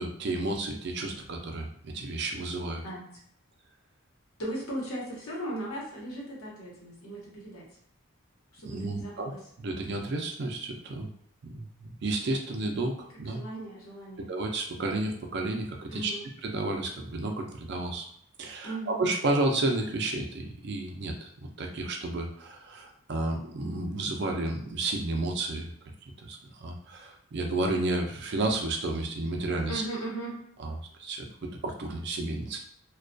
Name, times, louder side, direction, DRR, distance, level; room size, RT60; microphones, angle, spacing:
voice 1, 0.0-2.8 8.6-9.3 9.6-11.1 11.4-13.4 14.3-18.1 18.4-25.7 26.0-29.8 30.6-32.6, right 2 dB, 55° right, 3 dB, 0.4 m, -32 dB
voice 2, 4.4-7.6 8.5-9.4 13.3-14.3 15.9-16.2 18.6-19.0 29.7-30.4, right 1 dB, 90° left, -4 dB, 1.0 m, -37 dB
2.2 x 2.2 x 2.5 m, 0.68 s
head